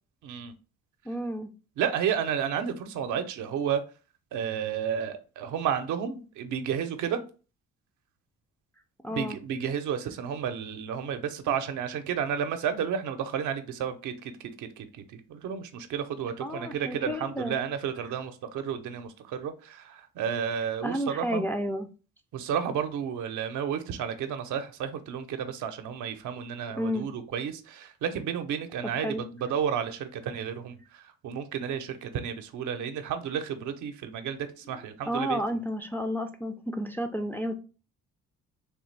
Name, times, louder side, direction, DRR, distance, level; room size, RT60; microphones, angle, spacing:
voice 1, 0.2-0.5 1.8-3.8 4.3-7.2 9.1-14.3 14.6-14.9 15.1-21.4 22.3-30.8 31.2-35.6, right 8 dB, 75° right, 0.6 m, -32 dB
voice 2, 1.1-1.5 9.0-9.4 16.4-17.5 20.8-21.9 26.7-27.1 28.8-29.2 34.7-34.8 35.1-37.6, equal, 5° left, 0.3 m, -31 dB
3.4 x 2.4 x 3.2 m
cardioid pair, 90°, 30 cm